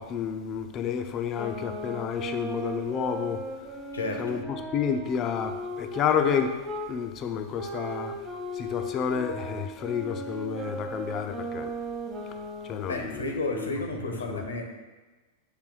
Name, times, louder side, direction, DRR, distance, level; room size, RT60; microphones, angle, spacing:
voice 1, 0.0-3.4 4.2-4.4 4.7-6.6 6.9-8.2 8.5-11.7 12.6-13.7 14.3-14.4, left 7 dB, 35° left, 6 dB, 0.6 m, -30 dB
sound 1, 1.3-6.9 7.5-13.0, right 1 dB, 25° right, 1.5 m, -36 dB
voice 2, 3.9-4.3 12.8-14.6, left 2 dB, 70° left, 3 dB, 1.0 m, -32 dB
7.5 x 3.4 x 4.9 m, 1.2 s
figure-of-eight pair, 90°, 0 cm